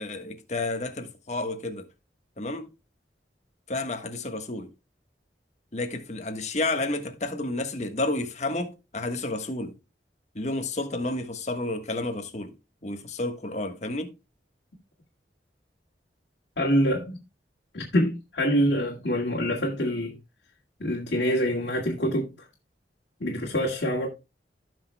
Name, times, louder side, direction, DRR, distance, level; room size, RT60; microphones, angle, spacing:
voice 1, 0.0-1.9 2.4-2.7 3.7-4.7 5.7-9.8 10.3-12.5 12.8-14.1, left 2 dB, 40° left, 1.4 m, -31 dB
voice 2, 16.6-17.2 17.7-20.2 20.8-22.5 23.2-24.1, equal, 75° left, 2.2 m, -25 dB
16.5 x 6.2 x 2.2 m
head